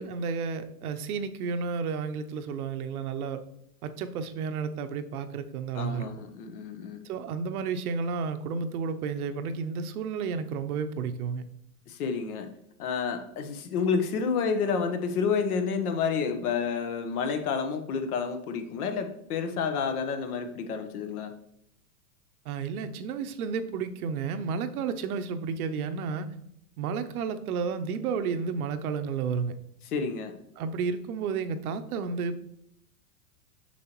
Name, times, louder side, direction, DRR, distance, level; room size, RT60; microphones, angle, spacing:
voice 1, 0.0-3.4 3.8-6.1 7.0-11.4 22.4-26.3 26.8-29.5 30.6-32.4, right 5 dB, 70° right, 9 dB, 0.8 m, -32 dB
voice 2, 5.7-7.0 11.9-12.5 12.8-21.3 29.9-30.3, left 5 dB, 70° left, 7 dB, 1.2 m, -29 dB
7.1 x 6.2 x 3.0 m, 0.75 s
hypercardioid pair, 135°, 46 cm